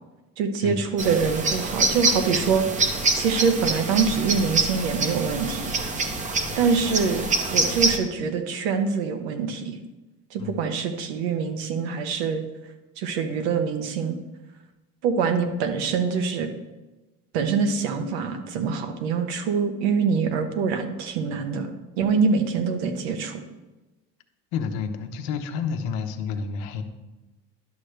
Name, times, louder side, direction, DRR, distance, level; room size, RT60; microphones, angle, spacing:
voice 1, 0.4-2.9 3.1-5.8 6.6-9.8 10.3-12.4 13.0-14.2 15.0-16.5 17.3-23.4, right 5 dB, 80° right, 7 dB, 1.1 m, -25 dB
sound 1, 1.0-8.0, right 3 dB, 25° right, 0.8 m, -25 dB
voice 2, 24.5-26.8, left 6 dB, 75° left, 6 dB, 1.0 m, -29 dB
11.0 x 6.4 x 3.4 m, 1.1 s
cardioid pair, 130°, 31 cm